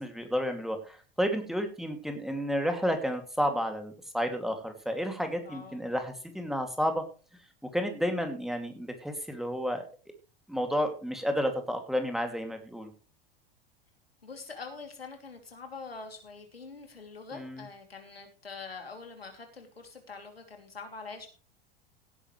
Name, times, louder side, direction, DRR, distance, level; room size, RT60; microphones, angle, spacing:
voice 1, 0.0-7.0 7.7-9.8 10.5-12.9 17.3-17.7, equal, ahead, 5 dB, 2.6 m, -31 dB
voice 2, 5.4-5.8 14.2-21.3, left 4 dB, 85° left, 4 dB, 3.1 m, -44 dB
17.0 x 10.0 x 3.3 m, 0.35 s
figure-of-eight pair, 85°, 29 cm